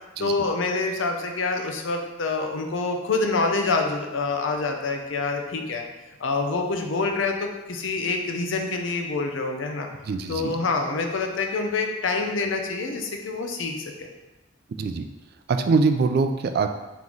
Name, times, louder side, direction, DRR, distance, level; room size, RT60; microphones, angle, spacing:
voice 1, 0.2-5.9 6.2-9.9 10.3-14.1, left 3 dB, 80° left, 3 dB, 0.6 m, -26 dB
voice 2, 10.0-10.6 14.8-15.1 15.5-16.7, right 4 dB, 55° right, 7 dB, 0.3 m, -23 dB
3.8 x 3.0 x 3.8 m, 1.1 s
head